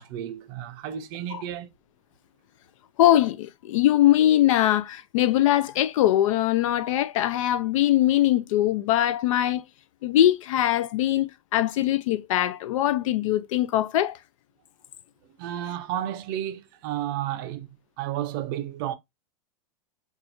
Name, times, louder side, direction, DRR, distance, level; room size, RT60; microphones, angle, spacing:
voice 1, 0.0-1.7 15.4-17.7 18.0-18.9, right 11 dB, 40° right, 0.5 m, -32 dB
voice 2, 3.0-9.6 10.0-14.2, left 13 dB, 70° left, 0.4 m, -22 dB
4.2 x 2.4 x 2.5 m
supercardioid pair, 175°, 18 cm